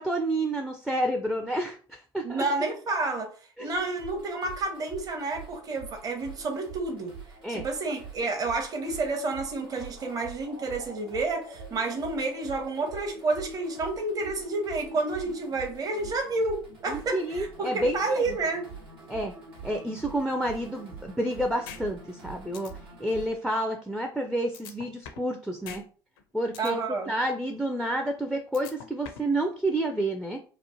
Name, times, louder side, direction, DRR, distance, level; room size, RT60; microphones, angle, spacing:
voice 1, 0.0-2.5 3.6-3.7 7.4-7.6 16.9-18.0 18.3-18.4 19.1-19.3 19.6-22.7 23.0-25.8 26.3-26.8 27.1-30.4, right 1 dB, ahead, 4 dB, 0.4 m, -29 dB
voice 2, 2.2-3.3 3.6-7.1 7.5-18.7 26.6-27.1, right 3 dB, 30° right, 3 dB, 0.7 m, -30 dB
sound 1, 3.7-23.3, right 4 dB, 80° right, 1.0 m, -45 dB
sound 2, 21.7-21.8 22.2-22.3 22.5-22.7 24.5-25.3 25.7-25.8 26.2-26.7 28.5-29.3, left 7 dB, 65° left, 0.5 m, -42 dB
2.9 x 2.0 x 2.8 m, 0.41 s
figure-of-eight pair, 65°, 12 cm